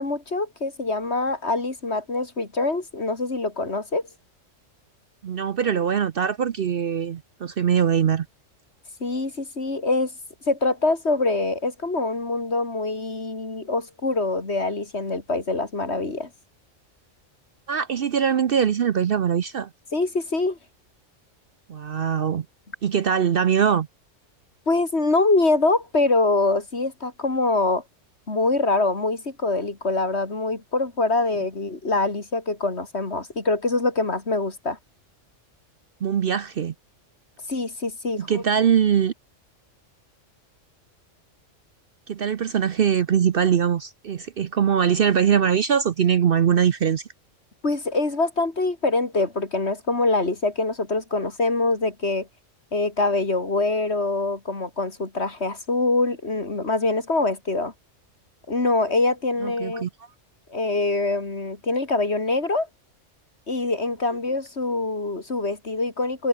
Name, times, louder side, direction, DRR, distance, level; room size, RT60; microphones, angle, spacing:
voice 1, 0.0-4.0 9.0-10.1 10.5-16.3 19.9-20.6 24.7-27.8 28.3-34.8 37.5-38.4 47.6-52.3 52.7-57.7 58.5-59.9 60.5-62.7 63.5-66.3, left 2 dB, 55° left, 3.6 m, -24 dB
voice 2, 5.2-8.3 17.7-19.7 21.7-22.5 22.8-23.9 36.0-36.7 38.2-39.1 42.1-47.0 59.4-59.9, right 8 dB, 55° right, 0.8 m, -22 dB
omnidirectional pair, 1.3 m